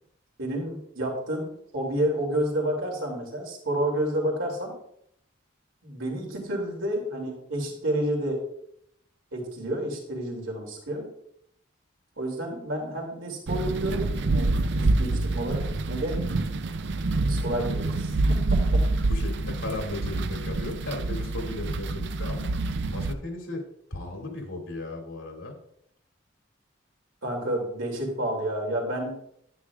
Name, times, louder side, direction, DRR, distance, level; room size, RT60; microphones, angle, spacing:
voice 1, 0.4-4.7 5.8-8.4 9.3-11.1 12.2-16.2 17.3-18.9 27.2-29.2, right 1 dB, 80° right, 0 dB, 2.8 m, -30 dB
sound 1, 13.5-23.1, right 2 dB, 60° right, 0.5 m, -27 dB
voice 2, 19.0-23.6 23.9-25.6, left 2 dB, 85° left, 1 dB, 2.5 m, -36 dB
9.9 x 9.4 x 2.4 m, 0.72 s
head